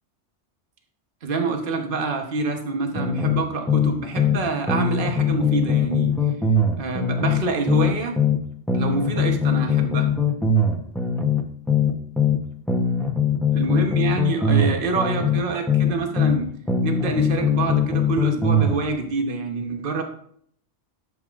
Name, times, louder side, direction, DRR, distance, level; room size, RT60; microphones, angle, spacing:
voice 1, 1.2-6.1 6.8-8.1 8.7-10.1 13.5-16.5 16.8-20.0, right 3 dB, 50° right, 4 dB, 1.2 m, -26 dB
sound 1, 3.0-4.4 4.7-8.4 8.7-12.4 12.7-16.4 16.7-18.8, left 4 dB, ahead, 0.8 m, -21 dB
11.0 x 7.4 x 2.5 m, 0.64 s
omnidirectional pair, 1.2 m